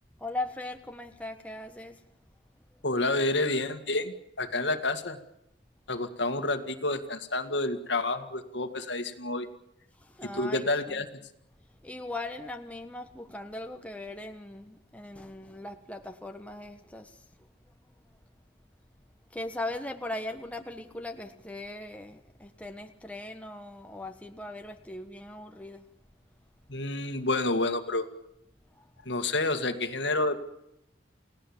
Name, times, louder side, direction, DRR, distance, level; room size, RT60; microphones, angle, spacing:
voice 1, 0.2-2.0 10.0-11.0 11.8-17.2 19.3-25.8 28.7-28.9, left 2 dB, 5° left, 5 dB, 1.3 m, -39 dB
voice 2, 2.8-5.2 5.9-9.5 10.2-11.2 26.7-28.1 29.1-30.4, left 2 dB, 70° left, 8 dB, 2.0 m, -29 dB
29.5 x 17.5 x 7.3 m, 0.82 s
head